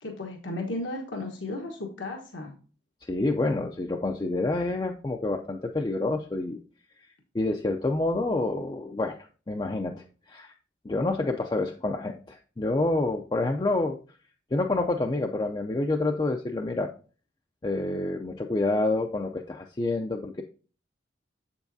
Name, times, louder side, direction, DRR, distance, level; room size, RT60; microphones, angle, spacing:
voice 1, 0.0-2.5, left 2 dB, 85° left, 1 dB, 1.2 m, -34 dB
voice 2, 3.0-6.6 7.0-7.1 7.3-9.2 9.5-10.5 10.8-14.0 14.5-16.9 17.6-20.4, left 2 dB, 25° left, 3 dB, 0.4 m, -28 dB
7.9 x 7.0 x 2.6 m, 0.39 s
head